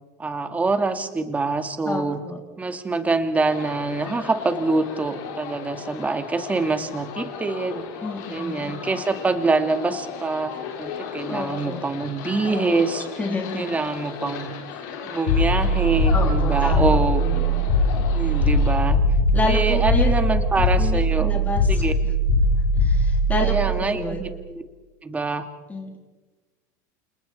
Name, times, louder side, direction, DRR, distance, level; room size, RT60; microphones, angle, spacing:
voice 1, 0.2-2.2 2.6-7.8 8.3-13.1 13.6-14.5 15.0-17.2 18.1-19.0 19.4-21.4 21.7-21.9 23.4-24.6 25.0-25.5, right 3 dB, 15° right, 7 dB, 2.2 m, -25 dB
voice 2, 1.9-2.4 8.0-8.7 11.3-11.8 13.2-13.6 16.1-17.7 19.3-20.1 20.6-21.9 22.7-24.2 25.7-26.0, left 3 dB, 15° left, 1 dB, 3.7 m, -29 dB
sound 1, 3.4-18.8, left 6 dB, 75° left, 4.7 m, -36 dB
sound 2, 15.3-24.4, equal, 90° left, 3.1 m, -20 dB
29.5 x 27.5 x 4.4 m, 1.3 s
supercardioid pair, 125°, 10 cm